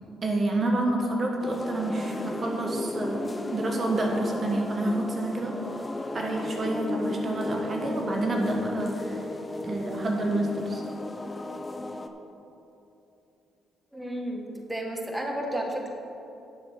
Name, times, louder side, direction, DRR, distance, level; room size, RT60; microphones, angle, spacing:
voice 1, 0.2-5.5 6.1-9.3 9.6-10.8, right 2 dB, 40° right, 1 dB, 1.2 m, -28 dB
sound 1, 1.4-12.1, left 2 dB, 20° left, 0.7 m, -34 dB
voice 2, 13.9-15.9, right 1 dB, 5° right, 0 dB, 1.6 m, -32 dB
10.5 x 6.9 x 5.9 m, 2.8 s
cardioid pair, 90°, 0 cm